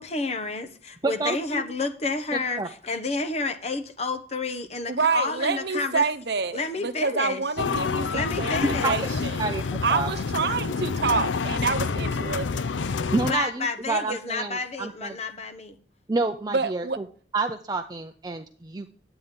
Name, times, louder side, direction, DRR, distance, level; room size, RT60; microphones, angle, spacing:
voice 1, 0.0-6.0 6.5-7.4 8.1-9.0 13.2-15.8, left 3 dB, 35° left, 0.9 m, -30 dB
voice 2, 1.0-1.6 2.3-2.7 8.8-8.9 9.4-10.1 10.6-10.7 13.1-15.2 16.1-17.0 17.3-18.9, right 3 dB, 20° right, 0.5 m, -29 dB
voice 3, 4.9-8.6 8.8-9.4 9.8-12.7 16.5-17.0, right 4 dB, 60° right, 0.8 m, -27 dB
sound 1, 7.6-13.3, left 5 dB, 85° left, 0.5 m, -28 dB
9.8 x 8.9 x 3.7 m
head